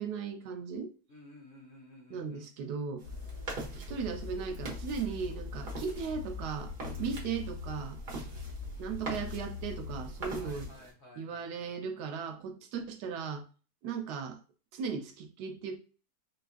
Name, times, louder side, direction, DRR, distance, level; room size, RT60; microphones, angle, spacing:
voice 1, 0.0-0.9 2.1-3.1 3.7-6.7 7.0-8.3 8.8-10.7 11.2-13.4 13.8-14.4 14.7-15.8, right 6 dB, 80° right, 1.1 m, -37 dB
voice 2, 1.1-2.5 6.8-7.3 8.0-8.7 10.4-11.8, left 1 dB, 50° left, 1.0 m, -55 dB
sound 1, 3.0-10.7, left 4 dB, 75° left, 1.2 m, -42 dB
sound 2, 3.0-10.9, right 3 dB, 40° right, 0.8 m, -45 dB
4.2 x 2.4 x 2.4 m
omnidirectional pair, 1.7 m